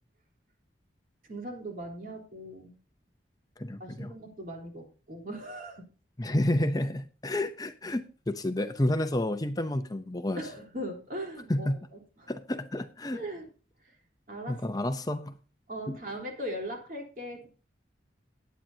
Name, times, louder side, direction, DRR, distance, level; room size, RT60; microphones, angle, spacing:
voice 1, 1.3-2.7 3.8-5.9 10.4-11.7 12.2-12.3 13.1-13.5 14.3-14.6 15.7-17.5, equal, 45° right, 1 dB, 3.7 m, -39 dB
voice 2, 3.6-4.1 6.2-10.5 11.5-11.9 12.3-13.2 14.5-15.4 15.9-16.0, left 1 dB, 20° left, 8 dB, 0.6 m, -30 dB
20.5 x 9.1 x 2.8 m, 0.36 s
head